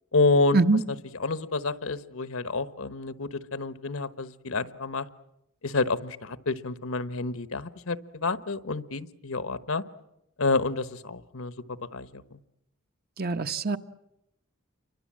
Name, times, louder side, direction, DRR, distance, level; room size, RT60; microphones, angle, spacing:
voice 1, 0.1-0.6 1.2-5.1 5.6-9.8 10.4-12.4, left 3 dB, 75° left, 14 dB, 1.1 m, -28 dB
voice 2, 13.2-13.8, right 3 dB, 45° right, 9 dB, 0.9 m, -23 dB
29.0 x 24.0 x 7.5 m, 0.88 s
head